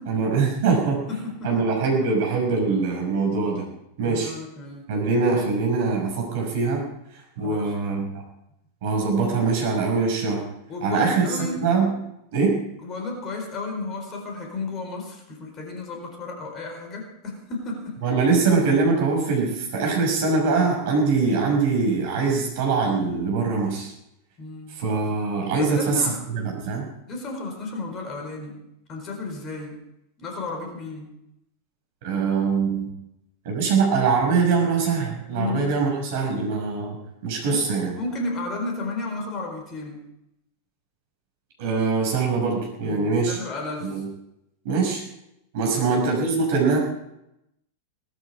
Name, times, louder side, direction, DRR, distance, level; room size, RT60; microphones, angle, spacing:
voice 1, 0.1-1.0 1.4-3.7 4.0-4.3 4.9-6.8 7.4-8.2 8.8-10.4 10.8-11.9 12.3-12.6 18.0-23.9 24.8-26.8 32.0-32.9 33.4-37.0 37.2-37.9 41.6-43.4 43.8-44.1 44.6-45.0 45.5-46.8, right 4 dB, 50° right, 1 dB, 6.2 m, -23 dB
voice 2, 1.1-1.8 4.0-4.9 5.3-5.4 7.4-7.7 10.7-11.6 12.8-18.0 24.4-24.8 25.6-26.2 26.6-26.8 27.1-28.6 28.9-29.8 30.2-31.1 35.3-35.8 37.5-37.7 37.9-40.0 42.8-44.0 45.6-45.8, left 3 dB, 30° left, 3 dB, 4.5 m, -33 dB
19.0 x 13.0 x 4.9 m, 0.82 s
figure-of-eight pair, 90°, 0 cm